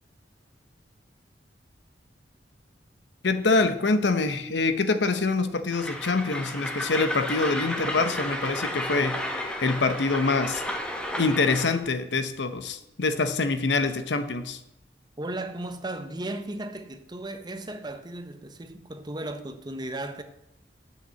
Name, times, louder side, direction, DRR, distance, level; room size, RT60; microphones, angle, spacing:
voice 1, 3.2-10.9 11.2-14.6, left 3 dB, 80° left, 0.8 m, -25 dB
Train, 5.7-11.8, left 1 dB, 5° left, 1.0 m, -32 dB
voice 2, 15.2-20.2, right 1 dB, 25° right, 0.8 m, -35 dB
8.0 x 6.0 x 7.5 m
head